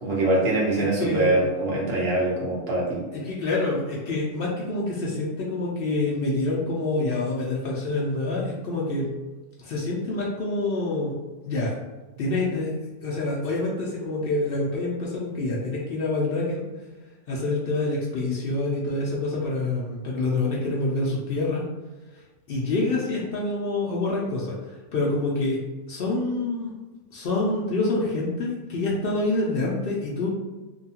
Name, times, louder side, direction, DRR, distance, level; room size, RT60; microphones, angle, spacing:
voice 1, 0.0-3.0, right 2 dB, 50° right, -5 dB, 1.0 m, -23 dB
voice 2, 1.0-1.4 3.1-9.1 9.6-11.1 11.5-11.7 12.2-16.6 17.3-21.6 22.5-24.5 24.9-25.6 25.9-26.7 27.1-30.3, left 2 dB, 80° left, -4 dB, 0.5 m, -26 dB
2.7 x 2.2 x 2.8 m, 1.2 s
omnidirectional pair, 1.6 m